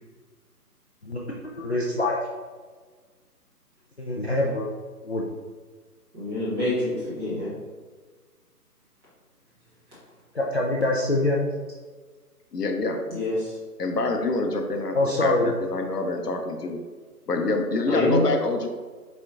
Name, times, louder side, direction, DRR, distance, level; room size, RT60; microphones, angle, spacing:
voice 1, 1.6-2.2 4.0-4.7 5.0-5.2 10.3-11.5 14.9-15.5, left 2 dB, 45° left, -3 dB, 0.4 m, -24 dB
voice 2, 6.1-7.5 13.1-13.5 17.9-18.2, left 1 dB, 15° right, -10 dB, 1.3 m, -26 dB
voice 3, 12.5-13.0 13.8-16.8 17.3-18.7, left 2 dB, 75° left, 4 dB, 0.7 m, -26 dB
4.5 x 4.4 x 2.5 m, 1.4 s
figure-of-eight pair, 145°, 48 cm